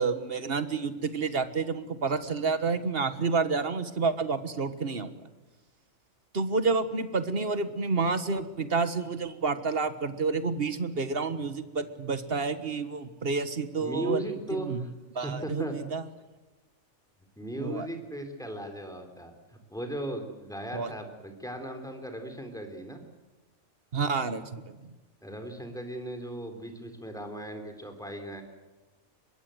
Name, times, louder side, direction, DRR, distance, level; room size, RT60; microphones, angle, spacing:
voice 1, 0.0-5.1 6.3-14.2 14.7-14.9 15.1-16.0 17.6-17.9 20.7-20.9 23.9-24.7, right 4 dB, 45° right, 11 dB, 1.7 m, -29 dB
voice 2, 13.8-14.9 15.2-15.8 17.4-19.3 19.7-23.0 25.2-28.4, right 1 dB, ahead, 5 dB, 3.8 m, -37 dB
24.5 x 21.0 x 8.0 m, 1.2 s
omnidirectional pair, 1.4 m